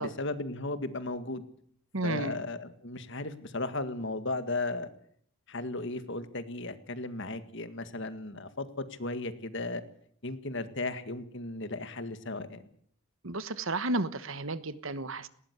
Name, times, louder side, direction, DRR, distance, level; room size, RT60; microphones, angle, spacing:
voice 1, 0.0-1.4 2.0-4.9 5.5-9.8 10.2-12.6, left 2 dB, 55° left, 11 dB, 1.9 m, -35 dB
voice 2, 1.9-2.4 13.2-15.3, right 2 dB, 65° right, 15 dB, 1.3 m, -32 dB
19.5 x 17.5 x 8.2 m, 0.62 s
head